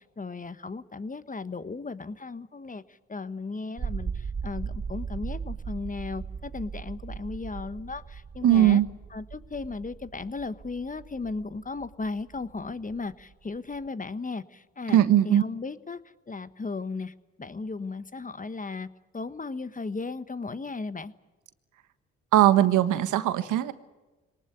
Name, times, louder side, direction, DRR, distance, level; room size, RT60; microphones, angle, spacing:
voice 1, 0.0-8.8 9.1-16.0 16.3-18.9 19.1-21.1, left 3 dB, 25° left, 14 dB, 1.3 m, -36 dB
sound 1, 3.8-13.9, right 6 dB, 30° right, 0.9 m, -38 dB
voice 2, 8.4-8.9 14.9-15.4 22.3-23.7, right 12 dB, 75° right, 12 dB, 1.4 m, -20 dB
22.5 x 19.0 x 9.3 m, 1.2 s
supercardioid pair, 55°, 31 cm